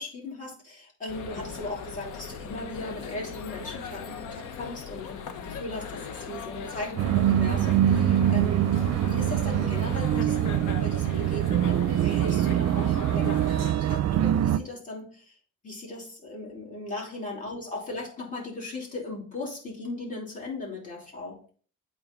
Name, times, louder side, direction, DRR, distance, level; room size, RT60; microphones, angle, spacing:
voice 1, 0.0-8.7 9.0-15.3 15.6-21.4, left 2 dB, 25° left, -4 dB, 3.1 m, -38 dB
sound 1, 1.1-13.7, left 6 dB, 85° left, 0.9 m, -39 dB
sound 2, 7.0-14.6, right 11 dB, 60° right, 0.5 m, -24 dB
8.5 x 3.8 x 3.9 m, 0.43 s
cardioid pair, 90°, 30 cm